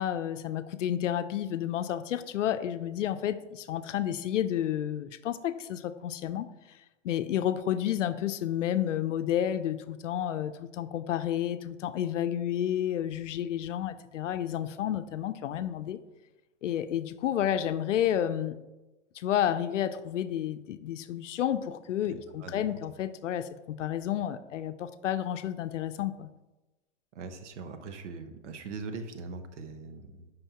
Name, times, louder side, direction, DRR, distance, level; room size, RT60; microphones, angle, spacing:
voice 1, 0.0-6.5 7.0-16.0 16.6-18.6 19.1-26.3, left 10 dB, 85° left, 12 dB, 0.6 m, -31 dB
voice 2, 22.0-22.6 27.1-30.3, right 4 dB, 75° right, 8 dB, 1.1 m, -41 dB
8.9 x 5.6 x 2.9 m, 1.1 s
hypercardioid pair, 150°, 36 cm